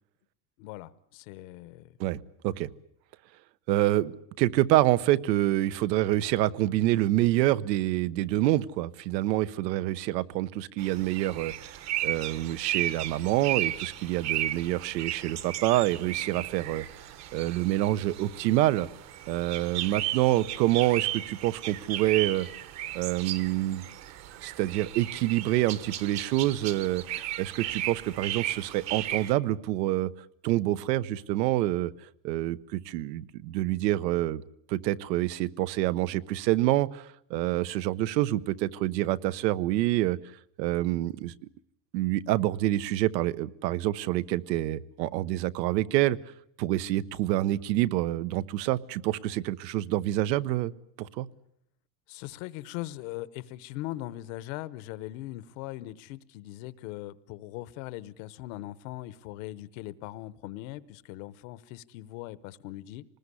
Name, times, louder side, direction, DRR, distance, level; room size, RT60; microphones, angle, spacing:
voice 1, 0.6-2.0 52.1-63.0, left 16 dB, 55° left, 1.0 m, -40 dB
voice 2, 2.0-2.7 3.7-4.1 4.4-16.8 17.3-18.9 19.3-22.5 22.9-23.8 24.4-30.1 30.4-31.9 32.2-34.4 34.7-40.2 40.6-41.3 41.9-46.2 46.6-50.7 51.0-51.3, right 15 dB, 85° right, 1.1 m, -27 dB
sound 1, 10.8-29.3, right 13 dB, 35° right, 1.1 m, -35 dB
25.5 x 20.0 x 9.8 m
supercardioid pair, 170°, 49 cm